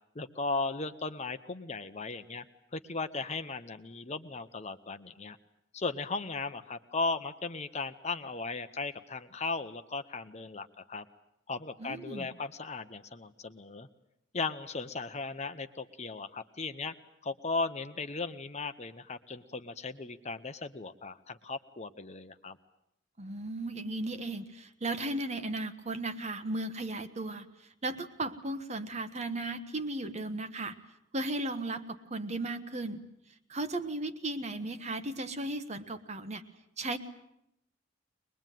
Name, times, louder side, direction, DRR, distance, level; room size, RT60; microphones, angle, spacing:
voice 1, 0.1-2.5 2.7-5.4 5.7-11.0 11.5-13.9 14.3-16.9 17.2-22.6, left 3 dB, 35° left, 10 dB, 0.9 m, -37 dB
voice 2, 11.8-12.3 23.2-27.5 27.8-30.7 31.1-33.0 33.5-36.4 36.8-37.0, right 2 dB, 35° right, 10 dB, 1.3 m, -35 dB
22.5 x 21.5 x 9.3 m, 0.80 s
head